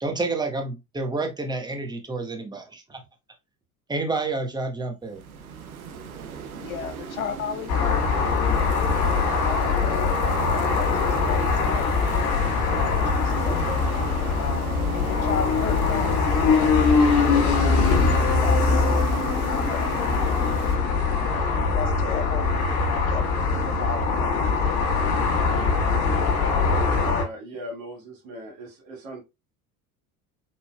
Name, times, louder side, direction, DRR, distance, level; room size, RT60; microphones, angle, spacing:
voice 1, 0.0-3.0 3.9-5.2, right 3 dB, 10° right, 1.1 m, -29 dB
sound 1, 5.0-20.8, right 6 dB, 80° right, 0.7 m, -36 dB
voice 2, 6.6-8.7 9.4-10.1 10.3-13.8 14.3-16.3 17.6-18.9 19.5-20.1 21.3-22.5 22.8-24.0, left 8 dB, 75° left, 0.8 m, -35 dB
sound 2, 7.7-27.2, left 4 dB, 50° left, 1.6 m, -22 dB
voice 3, 26.8-29.2, left 1 dB, 55° right, 1.8 m, -38 dB
4.1 x 3.9 x 2.3 m
figure-of-eight pair, 65°, 42 cm